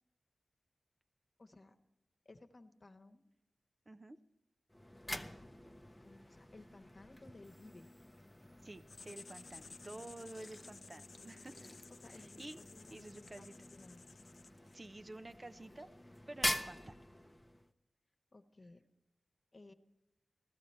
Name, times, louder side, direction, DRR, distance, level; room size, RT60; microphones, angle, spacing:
voice 1, 1.4-1.8 2.2-3.2 6.0-7.9 11.9-14.0 18.3-18.8 19.5-19.7, left 2 dB, 45° left, 5 dB, 1.1 m, -58 dB
voice 2, 3.9-4.2 8.6-11.7 12.1-12.6 12.9-13.5 14.7-15.9 16.3-17.0, right 2 dB, 35° right, 10 dB, 0.5 m, -50 dB
sound 1, 4.7-17.7, left 1 dB, 15° left, 0.7 m, -46 dB
Writing, 8.9-14.8, left 4 dB, 70° left, 0.4 m, -56 dB
15.5 x 12.5 x 4.3 m, 0.94 s
cardioid pair, 50°, 0 cm